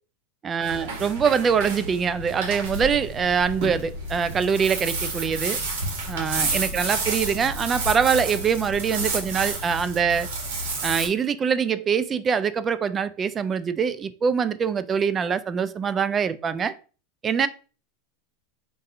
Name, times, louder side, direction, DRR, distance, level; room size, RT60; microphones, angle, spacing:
voice 1, 0.4-5.6 6.1-10.3 10.8-16.7 17.2-17.5, right 6 dB, 25° right, 0.3 m, -24 dB
sound 1, 0.6-11.1, right 3 dB, 70° right, 1.4 m, -30 dB
5.2 x 2.6 x 2.5 m
hypercardioid pair, 110°, 0 cm